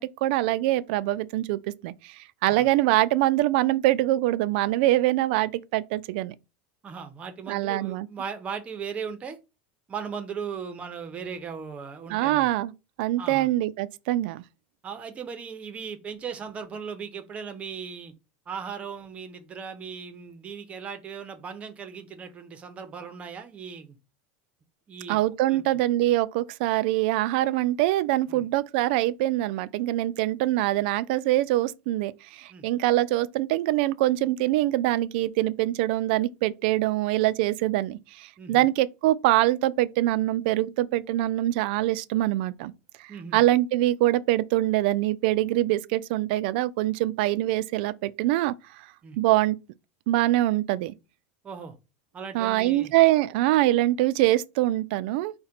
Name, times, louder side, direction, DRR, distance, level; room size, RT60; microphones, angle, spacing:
voice 1, 0.0-6.3 7.5-8.1 12.1-12.7 13.0-14.4 25.1-42.7 43.0-48.9 49.2-49.6 50.1-50.9 52.3-55.3, right 15 dB, 65° right, 0.3 m, -24 dB
voice 2, 6.8-9.4 9.9-12.5 13.2-13.5 14.8-18.1 18.5-23.9 24.9-25.2 25.5-25.8 28.3-28.4 32.5-32.7 38.4-38.7 43.1-43.4 49.0-49.2 51.4-51.8 52.1-52.9, right 6 dB, 20° right, 0.7 m, -37 dB
4.9 x 2.1 x 4.3 m
supercardioid pair, 150°, 6 cm